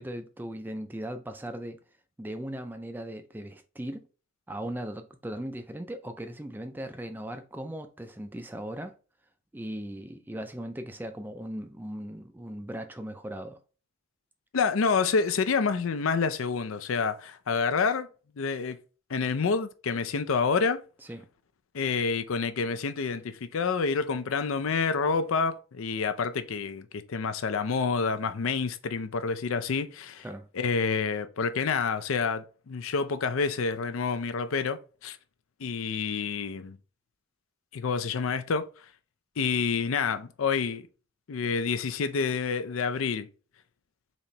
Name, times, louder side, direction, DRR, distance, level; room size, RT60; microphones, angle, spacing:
voice 1, 0.0-1.8 2.2-4.0 4.5-8.9 9.5-13.6 21.0-21.3 30.2-30.5, right 1 dB, 10° right, 0.3 m, -38 dB
voice 2, 14.5-18.1 18.4-18.8 19.1-20.8 21.7-30.3 30.5-35.2 35.6-36.8 37.7-38.7 39.4-40.8 41.3-43.3, left 5 dB, 75° left, 0.5 m, -28 dB
4.1 x 2.9 x 3.2 m
head